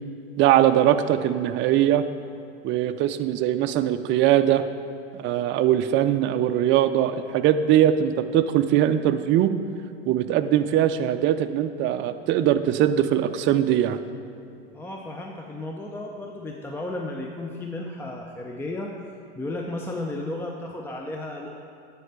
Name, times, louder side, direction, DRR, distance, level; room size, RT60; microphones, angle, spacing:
voice 1, 0.4-2.1 2.6-4.6 5.1-9.5 10.1-14.0, right 11 dB, 35° right, 10 dB, 0.5 m, -21 dB
voice 2, 14.7-19.0 19.4-21.5, left 2 dB, 5° left, 1 dB, 0.6 m, -33 dB
9.7 x 4.6 x 6.6 m, 2.7 s
hypercardioid pair, 105°, 32 cm